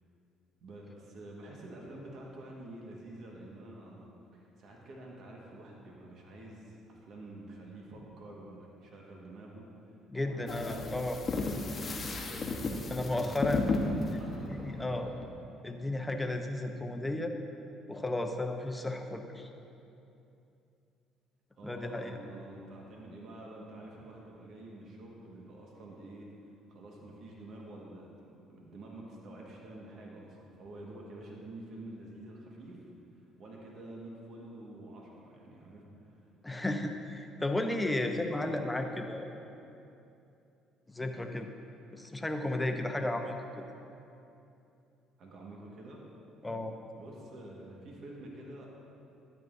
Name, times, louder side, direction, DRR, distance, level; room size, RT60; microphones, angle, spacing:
voice 1, 0.6-15.1 21.6-26.3 26.7-32.9 33.2-36.3 45.2-46.0 46.9-48.7, right 1 dB, 60° right, -2 dB, 1.5 m, -48 dB
voice 2, 10.1-11.2 12.9-13.6 14.5-15.1 15.6-17.3 17.9-19.5 21.6-22.1 36.4-39.3 40.9-41.5 41.9-43.3 46.4-46.8, left 2 dB, 15° left, 5 dB, 0.8 m, -33 dB
sound 1, 10.5-15.3, left 3 dB, 40° left, 1.0 m, -34 dB
12.0 x 9.3 x 2.7 m, 2.8 s
supercardioid pair, 75°, 0 cm